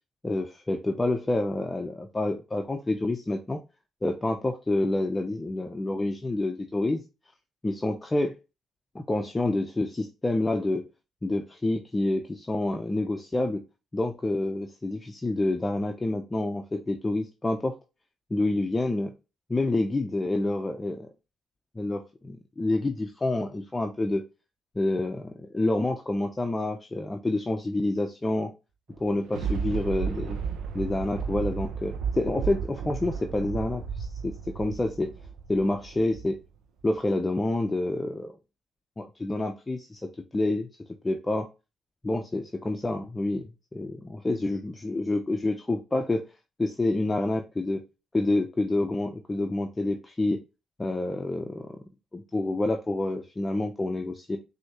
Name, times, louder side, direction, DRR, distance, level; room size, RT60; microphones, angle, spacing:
voice 1, 0.2-3.6 4.0-7.0 7.6-8.4 8.9-10.8 11.2-13.6 13.9-17.8 18.3-19.1 19.5-21.1 21.8-24.2 24.8-28.5 29.0-30.4 30.7-35.2 35.5-36.4 36.8-38.3 39.0-40.7 41.0-41.5 42.0-46.3 46.6-47.8 48.1-50.4 50.8-51.8 52.1-54.4, left 2 dB, 20° left, 3 dB, 0.6 m, -28 dB
Thunder, 28.9-36.5 36.9-37.0, right 6 dB, 80° right, 0.7 m, -33 dB
6.2 x 2.8 x 2.9 m, 0.28 s
cardioid pair, 90°, 0 cm